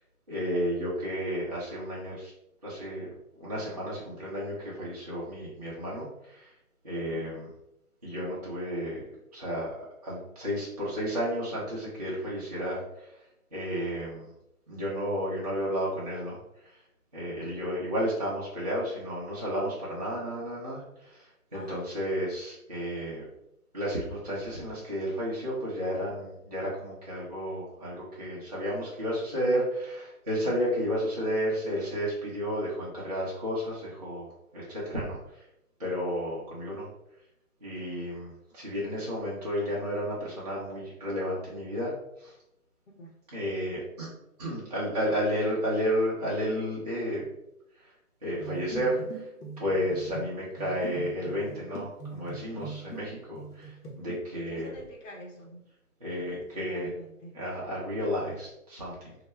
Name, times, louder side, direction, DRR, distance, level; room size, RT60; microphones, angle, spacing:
voice 1, 0.3-2.3 2.6-3.1 3.3-6.5 6.8-7.5 8.0-13.1 13.5-14.3 14.7-16.4 17.1-23.3 23.7-35.4 35.8-36.9 37.6-41.9 42.2-42.3 43.3-44.1 44.4-47.3 48.2-49.3 49.6-54.7 56.0-56.9 57.3-59.1, equal, 30° right, -8 dB, 0.4 m, -32 dB
sound 1, 48.4-53.1 53.4-54.2, right 3 dB, 85° left, 0.8 m, -42 dB
voice 2, 54.3-55.6 56.1-57.3, equal, 55° left, -1 dB, 0.8 m, -46 dB
2.1 x 2.0 x 3.0 m, 0.83 s
figure-of-eight pair, 135°, 44 cm